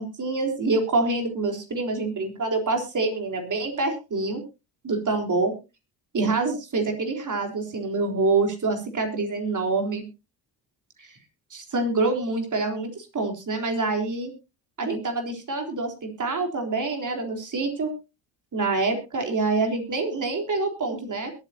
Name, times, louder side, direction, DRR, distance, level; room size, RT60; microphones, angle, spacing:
voice 1, 0.0-4.4 4.8-5.5 6.1-10.0 11.0-11.2 11.5-14.3 14.8-17.9 18.5-21.3, right 3 dB, 40° right, 4 dB, 3.9 m, -26 dB
22.0 x 9.0 x 2.9 m, 0.28 s
hypercardioid pair, 60°, 48 cm